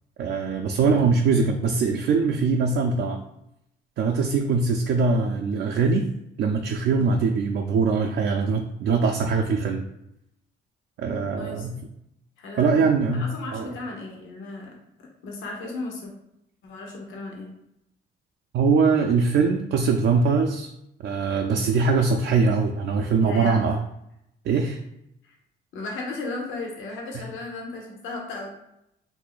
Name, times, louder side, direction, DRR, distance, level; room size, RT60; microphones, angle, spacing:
voice 1, 0.2-3.2 4.0-6.1 6.4-9.8 11.0-11.8 12.6-13.7 18.5-20.7 21.0-23.8 24.4-24.8 27.1-27.3, right 4 dB, 65° right, 2 dB, 0.4 m, -22 dB
voice 2, 0.8-1.1 11.0-11.7 12.4-12.8 13.1-16.1 16.6-17.5 23.2-23.7 25.2-25.3 25.7-28.5, left 2 dB, 90° left, 0 dB, 0.8 m, -35 dB
2.8 x 2.6 x 3.9 m, 0.80 s
cardioid pair, 90°, 20 cm